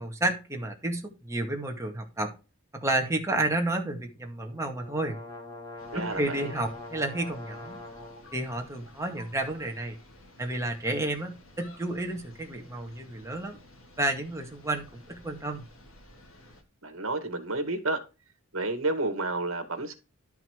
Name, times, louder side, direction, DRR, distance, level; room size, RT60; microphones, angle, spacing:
voice 1, 0.0-2.3 2.7-5.2 5.9-7.8 8.3-10.0 10.4-13.6 14.0-15.6, right 2 dB, 15° right, 2.2 m, -31 dB
sound 1, 4.4-8.3, left 2 dB, 15° left, 2.8 m, -43 dB
sound 2, 5.8-16.6, left 1 dB, 70° left, 3.0 m, -53 dB
voice 2, 5.9-6.5 16.8-18.0 18.5-19.9, right 2 dB, 70° right, 2.2 m, -30 dB
12.0 x 5.9 x 4.8 m
head